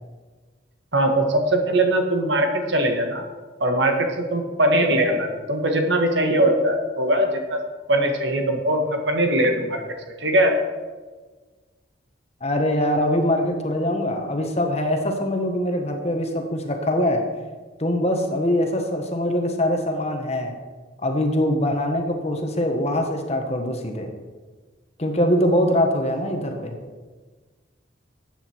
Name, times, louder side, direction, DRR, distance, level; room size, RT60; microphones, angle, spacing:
voice 1, 0.9-3.2 3.6-7.6 7.9-9.8 10.2-10.6, right 1 dB, 65° right, 4 dB, 1.7 m, -21 dB
voice 2, 12.4-17.2 17.8-20.6 21.0-24.1 25.0-26.8, left 1 dB, 35° left, 3 dB, 1.5 m, -23 dB
13.5 x 9.1 x 4.6 m, 1.4 s
head